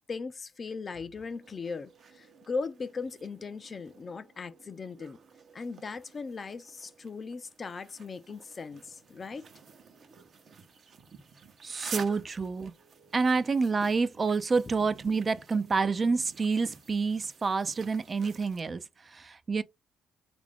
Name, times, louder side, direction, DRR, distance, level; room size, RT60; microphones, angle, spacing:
voice 1, 0.0-5.2 5.5-9.5 13.3-13.4, left 4 dB, 35° left, 0.4 m, -38 dB
sound 1, 1.2-18.6, right 5 dB, 55° right, 0.7 m, -49 dB
voice 2, 11.6-12.7 13.1-19.6, right 4 dB, 35° right, 0.4 m, -28 dB
3.5 x 2.5 x 3.4 m
cardioid pair, 90°, 0 cm